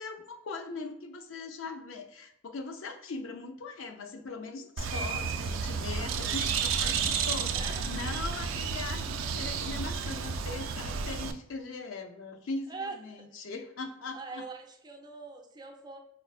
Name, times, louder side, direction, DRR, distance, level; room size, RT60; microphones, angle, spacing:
voice 1, 0.0-14.4, left 3 dB, 90° left, 5 dB, 0.5 m, -40 dB
Bird, 4.8-11.3, right 6 dB, 90° right, 0.3 m, -31 dB
voice 2, 7.5-7.9 12.7-13.0 13.3-13.4 14.1-16.0, right 4 dB, 20° right, 1 dB, 0.4 m, -42 dB
4.3 x 2.0 x 2.3 m, 0.81 s
head